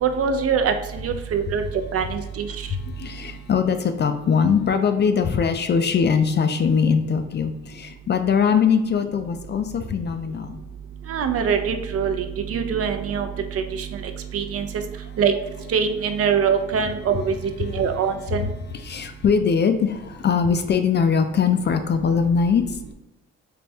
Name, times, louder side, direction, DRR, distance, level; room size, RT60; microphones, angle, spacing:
voice 1, 0.0-1.6 1.9-2.5 11.1-12.2 12.5-13.3 13.5-13.9 14.3-14.7 15.2-15.3 15.7-17.3 17.6-18.5, right 6 dB, 50° right, 7 dB, 0.5 m, -23 dB
voice 2, 2.7-10.6 18.8-22.9, left 6 dB, 35° left, 8 dB, 0.4 m, -21 dB
3.4 x 2.2 x 4.2 m, 0.97 s
cardioid pair, 90°, 30 cm